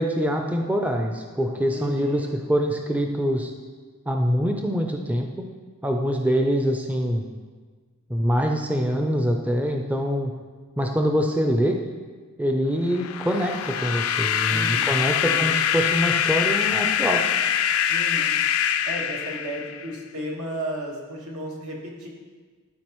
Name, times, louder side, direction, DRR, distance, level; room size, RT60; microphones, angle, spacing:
voice 1, 0.0-3.5 4.1-5.5 5.8-7.2 8.1-10.3 10.8-11.8 12.4-17.2, equal, 5° right, 2 dB, 0.4 m, -24 dB
voice 2, 1.7-2.4 14.5-15.5 17.9-18.4 18.8-22.1, right 1 dB, 85° right, -2 dB, 1.5 m, -34 dB
sound 1, 12.9-19.9, left 9 dB, 70° left, 0.3 m, -24 dB
12.0 x 4.7 x 3.0 m, 1.5 s
head